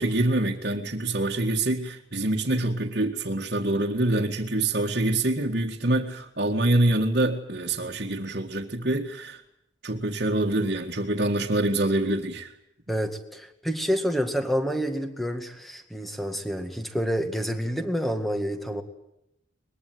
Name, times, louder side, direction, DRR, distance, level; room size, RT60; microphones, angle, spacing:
voice 1, 0.0-9.4 9.8-12.5, right 1 dB, 50° right, -2 dB, 2.0 m, -25 dB
voice 2, 12.9-18.8, equal, ahead, 6 dB, 2.0 m, -28 dB
23.5 x 21.5 x 9.4 m, 0.84 s
head